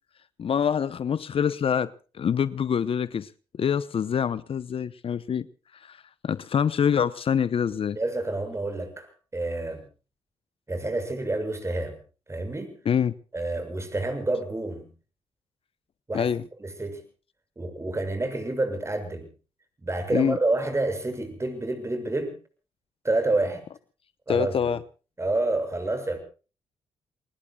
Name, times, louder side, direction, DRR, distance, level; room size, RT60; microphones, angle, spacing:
voice 1, 0.4-3.3 3.5-5.5 5.7-6.0 6.2-8.0 12.8-13.1 16.1-16.4 20.1-20.4 24.3-24.8, left 7 dB, 50° left, 0.8 m, -25 dB
voice 2, 8.0-9.8 10.7-12.0 12.3-12.8 13.3-14.9 16.1-16.3 16.6-17.0 17.6-19.3 19.8-22.3 23.0-23.6 24.3-24.7 25.2-26.2, right 2 dB, 25° right, 7.0 m, -28 dB
29.0 x 20.5 x 2.3 m
supercardioid pair, 50°, 12 cm